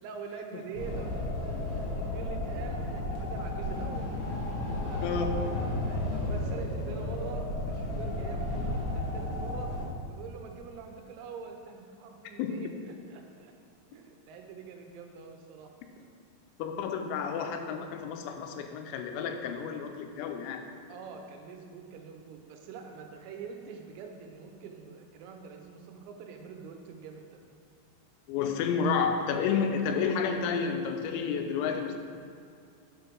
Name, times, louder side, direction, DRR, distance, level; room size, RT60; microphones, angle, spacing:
voice 1, 0.0-4.1 4.6-9.7 10.1-13.5 13.9-15.7 16.0-16.1 17.0-17.1 20.9-27.4, right 5 dB, 90° right, 3 dB, 3.5 m, -45 dB
sound 1, 0.7-9.9, left 1 dB, 70° left, 3.1 m, -33 dB
voice 2, 16.6-20.6 28.3-32.0, left 6 dB, 85° left, 5 dB, 3.3 m, -30 dB
7.8 x 4.5 x 5.2 m, 2.4 s
omnidirectional pair, 6.0 m